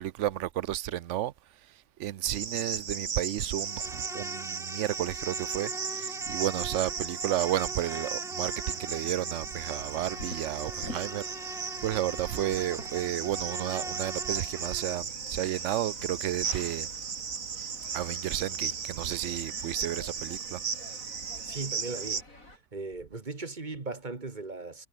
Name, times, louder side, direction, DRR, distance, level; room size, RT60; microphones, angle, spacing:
voice 1, 0.0-1.3 2.0-11.2 11.8-16.9 17.9-20.6, right 13 dB, 65° right, 0.9 m, -32 dB
Cricket, 2.2-22.2, right 6 dB, 85° right, 2.1 m, -36 dB
Insect, 3.5-15.0, equal, ahead, 4.7 m, -43 dB
sound 1, 9.8-22.6, left 2 dB, 85° left, 7.6 m, -49 dB
voice 2, 21.5-22.2 22.7-24.9, right 3 dB, 35° right, 1.8 m, -37 dB
omnidirectional pair, 1.4 m